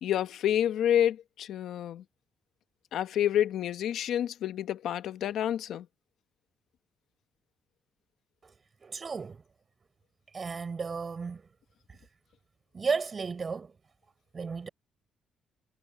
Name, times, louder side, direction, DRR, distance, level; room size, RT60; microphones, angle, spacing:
voice 1, 0.0-2.0 2.9-5.9, left 10 dB, 75° left, 1.3 m, -28 dB
voice 2, 8.8-9.4 10.3-11.4 11.9-12.0 12.7-13.7 14.3-14.7, right 5 dB, 35° right, 8.0 m, -33 dB
cardioid pair, 90°, 0 cm